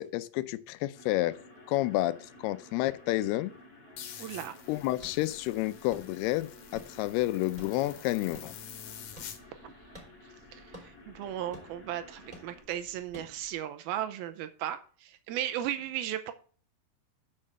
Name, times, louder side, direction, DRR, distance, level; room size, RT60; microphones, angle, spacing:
voice 1, 0.0-1.4 1.7-3.5 4.7-8.5, left 17 dB, 85° left, 15 dB, 2.6 m, -30 dB
sound 1, 0.9-12.6, left 1 dB, 25° left, 2.3 m, -54 dB
sound 2, 4.0-9.4, left 9 dB, 65° left, 2.4 m, -47 dB
voice 2, 4.2-4.6 10.5-16.3, right 11 dB, 80° right, 9 dB, 2.5 m, -36 dB
sound 3, 4.6-13.6, equal, 10° right, 2.8 m, -54 dB
6.7 x 6.4 x 7.3 m, 0.41 s
omnidirectional pair, 4.5 m